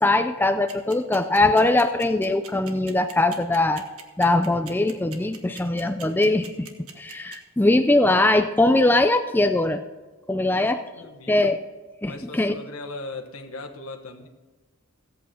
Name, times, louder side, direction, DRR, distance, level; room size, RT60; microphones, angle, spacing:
voice 1, 0.0-3.8 4.2-6.7 7.0-9.8 10.3-10.8 11.3-11.6 12.0-12.5, left 2 dB, 10° left, 7 dB, 0.4 m, -21 dB
sound 1, 0.7-7.4, right 8 dB, 70° right, 1.4 m, -41 dB
voice 2, 10.4-10.7 11.0-11.5 12.0-14.3, left 2 dB, 75° left, 4 dB, 1.4 m, -38 dB
16.0 x 8.5 x 4.4 m, 1.2 s
head